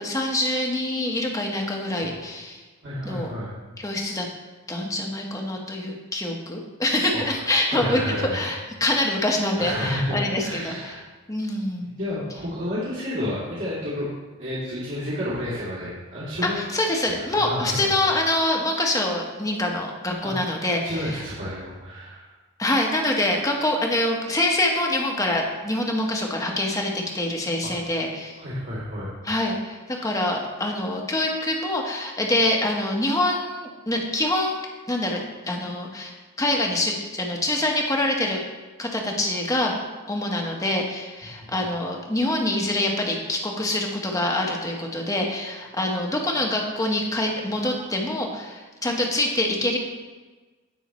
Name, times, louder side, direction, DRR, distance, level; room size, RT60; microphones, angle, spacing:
voice 1, 0.0-2.6 3.0-3.3 3.8-4.3 4.7-8.0 8.3-10.9 11.3-12.0 16.6-21.2 22.6-28.3 29.2-34.6 34.9-35.2 35.5-38.4 38.8-39.8 40.1-49.8, left 1 dB, 15° left, 0 dB, 1.2 m, -25 dB
voice 2, 2.8-3.5 7.1-7.4 7.7-8.4 9.6-11.0 11.8-14.1 14.4-16.6 16.9-17.9 20.2-20.3 20.8-22.3 27.6-27.7 28.4-29.1 29.9-30.1, equal, 55° right, -9 dB, 2.6 m, -31 dB
16.5 x 5.6 x 3.1 m, 1.3 s
head